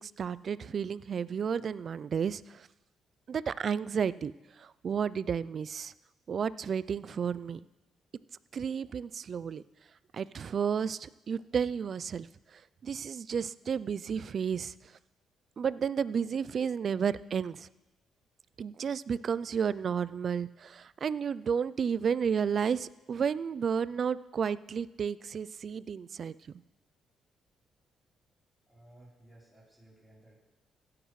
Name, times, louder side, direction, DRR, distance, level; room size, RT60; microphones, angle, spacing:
voice 1, 0.0-2.7 3.3-4.3 4.6-5.9 6.3-7.6 8.5-9.6 10.1-12.3 12.5-14.7 15.6-17.7 18.6-26.3, right 7 dB, 50° right, 18 dB, 0.3 m, -32 dB
voice 2, 28.7-30.4, right 1 dB, ahead, -5 dB, 3.8 m, -57 dB
16.0 x 9.7 x 3.2 m, 1.0 s
cardioid pair, 90°, 0 cm